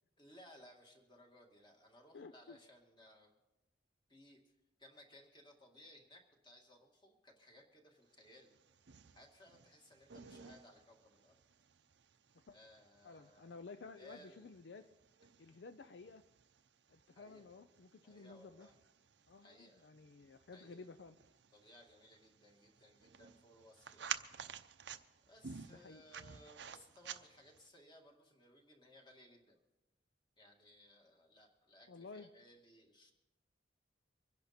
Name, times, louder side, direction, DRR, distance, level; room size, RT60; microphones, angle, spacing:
voice 1, 0.2-3.3 4.1-4.4 4.8-8.5 9.1-11.3 12.5-13.6 13.9-14.5 17.1-17.4 18.0-18.8 19.4-19.9 20.5-20.9 21.5-24.2 25.3-29.6 30.4-33.1, left 1 dB, 25° left, 1 dB, 2.1 m, -62 dB
voice 2, 2.1-2.6 12.5-12.6 13.0-14.9 15.4-16.2 16.9-18.7 19.3-21.2 25.7-26.0 31.9-32.3, left 4 dB, 65° left, 10 dB, 0.5 m, -53 dB
sound 1, 8.3-27.7, right 8 dB, 70° right, 0.7 m, -53 dB
24.5 x 10.5 x 4.3 m, 0.99 s
head